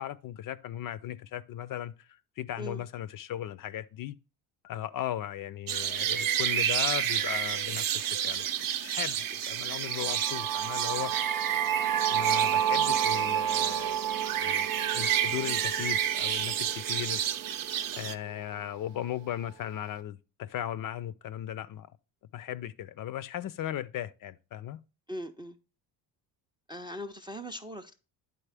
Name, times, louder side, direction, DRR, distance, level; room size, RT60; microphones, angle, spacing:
voice 1, 0.0-2.1 2.4-4.1 4.6-8.5 8.8-11.1 12.1-14.7 14.9-17.3 17.9-21.9 22.3-24.8, left 11 dB, 50° left, 0.5 m, -37 dB
sound 1, 5.7-18.1, right 9 dB, 50° right, 0.6 m, -30 dB
sound 2, 9.9-17.8, right 10 dB, 80° right, 0.7 m, -31 dB
voice 2, 25.1-25.6 26.7-27.9, equal, 10° right, 0.4 m, -40 dB
10.0 x 4.0 x 3.3 m
cardioid pair, 105°, 45 cm